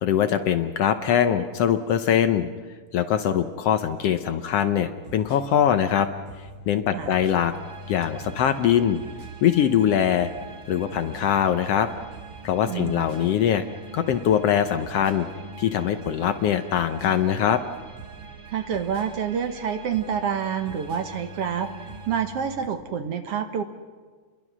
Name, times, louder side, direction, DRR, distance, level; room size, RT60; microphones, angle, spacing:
voice 1, 0.0-2.5 2.9-6.1 6.7-7.5 7.9-9.0 9.4-10.3 10.7-11.9 12.4-13.6 13.9-15.3 15.6-17.6, left 9 dB, 70° left, 9 dB, 1.7 m, -22 dB
sound 1, 5.0-22.7, right 2 dB, 90° right, 7.5 m, -44 dB
sound 2, 7.5-22.2, right 4 dB, 35° right, 0.4 m, -46 dB
voice 2, 12.7-13.0 18.5-23.6, right 8 dB, 60° right, 7 dB, 1.9 m, -28 dB
29.0 x 22.0 x 6.2 m, 1.5 s
omnidirectional pair, 3.3 m